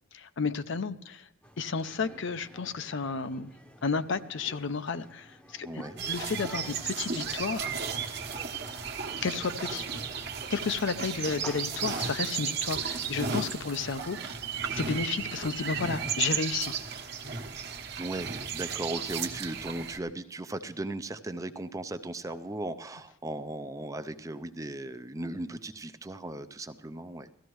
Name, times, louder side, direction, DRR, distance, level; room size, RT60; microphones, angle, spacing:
voice 1, 0.1-1.3 1.6-3.5 3.8-5.7 6.1-7.7 9.2-9.8 10.5-14.3 14.7-16.7, left 5 dB, 65° left, 12 dB, 0.6 m, -32 dB
sound 1, 1.4-13.1, equal, 5° left, 0.8 m, -51 dB
voice 2, 5.6-6.0 17.9-27.3, right 2 dB, 15° right, 11 dB, 0.5 m, -37 dB
sound 2, 6.0-20.0, right 6 dB, 55° right, 1.1 m, -34 dB
17.5 x 14.0 x 3.1 m, 0.83 s
head